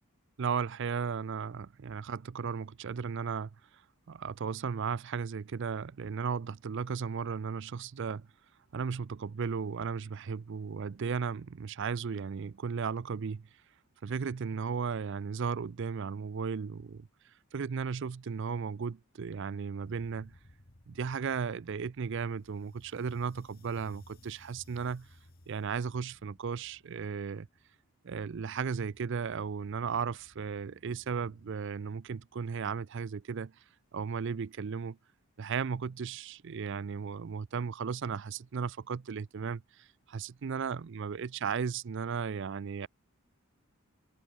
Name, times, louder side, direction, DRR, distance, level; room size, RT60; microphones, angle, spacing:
voice 1, 0.4-3.5 4.1-8.3 8.7-13.5 14.0-17.1 17.5-20.3 20.9-25.1 25.5-27.5 28.0-33.5 33.9-35.0 35.4-42.9, right 6 dB, 55° right, 0.4 m, -35 dB
sound 1, 19.8-31.5, left 1 dB, 40° left, 2.2 m, -60 dB
head